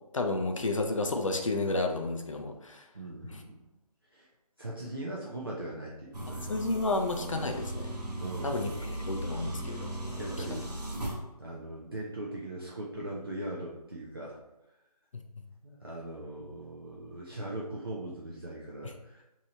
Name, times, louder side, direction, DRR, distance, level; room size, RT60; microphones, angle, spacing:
voice 1, 0.1-2.8 3.3-3.4 6.5-8.0 8.4-8.7 9.1-10.6, left 2 dB, 55° left, 4 dB, 0.4 m, -31 dB
voice 2, 2.7-3.6 4.1-4.3 4.6-6.6 8.2-9.2 10.2-10.7 11.4-14.4 15.6-19.2, right 1 dB, 35° right, -5 dB, 0.4 m, -40 dB
sound 1, 6.1-11.2, right 1 dB, 85° right, 0.8 m, -37 dB
3.0 x 2.7 x 2.6 m, 0.95 s
figure-of-eight pair, 160°, 20 cm